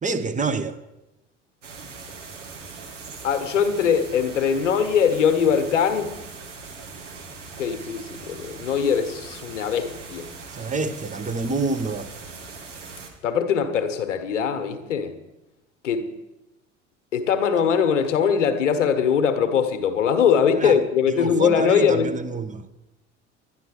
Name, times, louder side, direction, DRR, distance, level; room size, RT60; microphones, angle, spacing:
voice 1, 0.0-0.8 10.5-12.1 20.6-20.8 21.1-22.7, right 4 dB, 20° right, 1.0 m, -27 dB
sound 1, 1.6-13.1, right 4 dB, 75° right, 2.3 m, -40 dB
voice 2, 3.2-6.2 7.6-10.3 13.2-15.1 15.8-16.1 17.1-22.1, left 7 dB, 75° left, 1.3 m, -21 dB
11.0 x 11.0 x 6.7 m
figure-of-eight pair, 60°, 37 cm